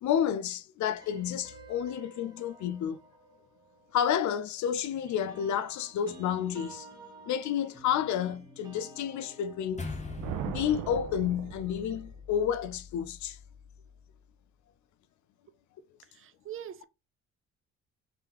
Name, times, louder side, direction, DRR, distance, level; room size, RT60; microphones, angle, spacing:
voice 1, 0.0-3.0 3.9-6.9 7.3-9.9 10.4-13.4, left 9 dB, 70° left, 0.5 m, -30 dB
sound 1, 0.9-4.3 4.8-11.3, right 2 dB, 15° right, 1.2 m, -52 dB
Thunder, 9.7-12.2, right 8 dB, 85° right, 0.6 m, -39 dB
sound 2, 9.8-14.3, left 4 dB, 25° left, 0.8 m, -43 dB
voice 2, 16.1-16.8, right 10 dB, 45° right, 0.4 m, -42 dB
3.7 x 3.3 x 2.9 m
cardioid pair, 90°, 30 cm